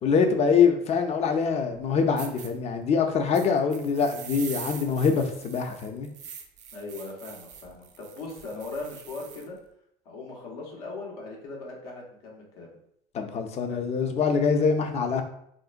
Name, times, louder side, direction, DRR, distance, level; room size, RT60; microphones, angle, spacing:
voice 1, 0.0-6.1 13.1-15.2, left 5 dB, 35° left, 6 dB, 0.5 m, -24 dB
sound 1, 1.7-1.8 2.2-2.5 3.3-9.5, right 7 dB, 40° right, 0.5 m, -43 dB
voice 2, 6.7-9.6 10.0-12.7 13.7-13.8, left 3 dB, 85° left, -2 dB, 1.0 m, -39 dB
3.8 x 2.1 x 2.5 m, 0.71 s
supercardioid pair, 105°, 19 cm